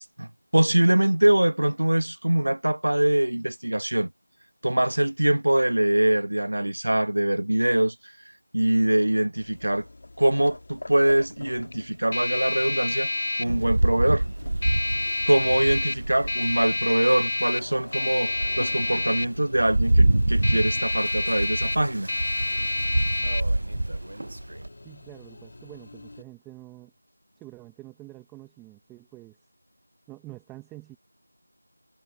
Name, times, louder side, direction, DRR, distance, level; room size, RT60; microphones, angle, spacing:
voice 1, 0.2-4.1 4.6-7.9 8.5-9.8 10.2-13.1 13.4-14.2 15.3-22.1, right 1 dB, 80° right, 1.2 m, -23 dB
sound 1, 9.4-26.2, left 2 dB, 45° left, 1.8 m, -30 dB
Rain, 13.4-17.0 17.5-17.6 18.1-24.7, right 1 dB, 55° right, 0.5 m, -26 dB
voice 2, 24.8-26.9 27.4-29.4 30.1-31.0, right 18 dB, 5° right, 0.9 m, -46 dB
figure-of-eight pair, 175°, 0 cm